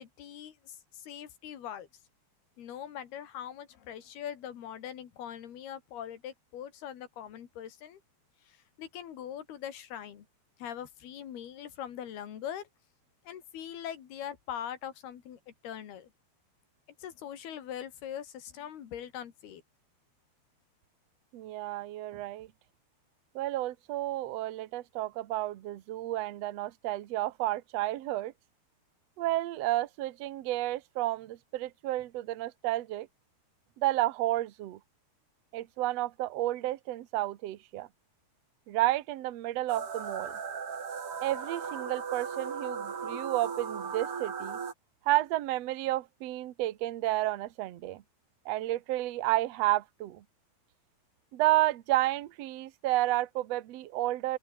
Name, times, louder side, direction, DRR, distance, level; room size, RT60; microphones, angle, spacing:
voice 1, 0.0-1.9 2.6-8.0 8.5-10.3 10.6-12.7 13.3-16.1 17.0-19.6, left 10 dB, 80° left, 4.4 m, -42 dB
voice 2, 21.3-22.5 23.3-28.3 29.2-33.1 33.8-34.8 35.5-37.9 38.7-40.4 41.2-44.6 45.0-48.0 48.4-50.2 51.3-54.4, right 16 dB, 65° right, 1.6 m, -31 dB
sound 1, 39.7-44.7, right 6 dB, 40° right, 3.1 m, -37 dB
open air
omnidirectional pair, 4.5 m